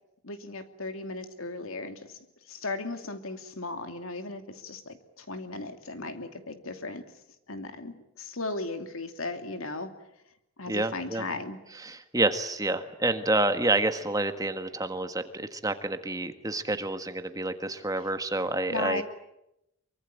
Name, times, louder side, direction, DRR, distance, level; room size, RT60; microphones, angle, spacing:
voice 1, 0.2-2.2 2.5-7.0 7.5-9.9 10.6-11.6 18.7-19.0, left 2 dB, 80° left, 7 dB, 2.7 m, -36 dB
voice 2, 10.7-11.2 11.8-19.0, right 2 dB, 15° right, 8 dB, 1.5 m, -28 dB
24.5 x 24.0 x 8.9 m, 0.84 s
head